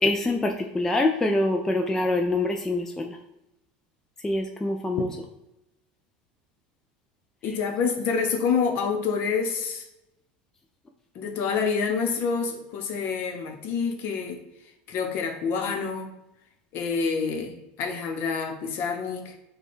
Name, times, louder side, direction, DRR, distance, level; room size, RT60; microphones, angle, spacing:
voice 1, 0.0-3.2 4.2-5.1, left 2 dB, 10° left, 3 dB, 0.3 m, -25 dB
voice 2, 7.4-9.9 11.1-14.4 14.9-16.1 16.7-19.3, left 5 dB, 50° left, 4 dB, 0.8 m, -27 dB
6.6 x 2.3 x 3.5 m, 0.90 s
supercardioid pair, 130°, 5 cm